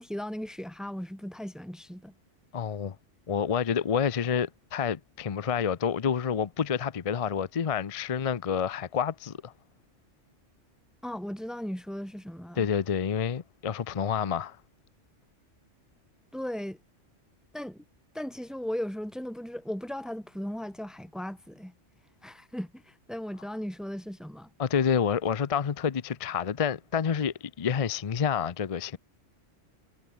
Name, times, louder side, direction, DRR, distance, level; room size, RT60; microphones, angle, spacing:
voice 1, 0.0-2.1 11.0-12.7 16.3-16.8 17.5-17.8 18.1-21.7 22.2-24.5, equal, ahead, 3.5 m, -37 dB
voice 2, 2.5-3.0 3.3-9.5 12.6-14.6 24.6-29.0, left 7 dB, 40° left, 0.6 m, -28 dB
omnidirectional pair, 1.2 m